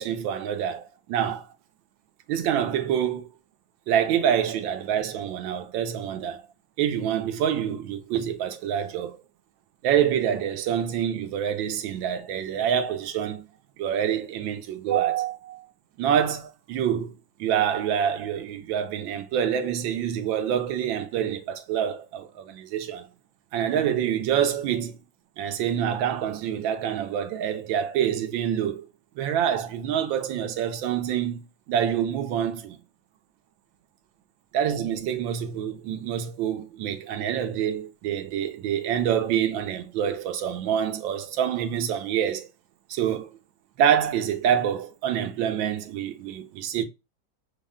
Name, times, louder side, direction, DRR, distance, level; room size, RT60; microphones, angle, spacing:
voice 1, 0.0-1.5 2.3-3.3 3.9-6.5 6.8-9.2 9.8-13.4 13.8-15.7 16.0-17.1 17.4-23.1 23.5-25.0 25.4-28.9 29.2-32.8 34.5-42.5 42.9-43.3 43.8-46.8, right 9 dB, 85° right, 1.5 m, -26 dB
6.0 x 2.1 x 3.5 m
omnidirectional pair, 2.0 m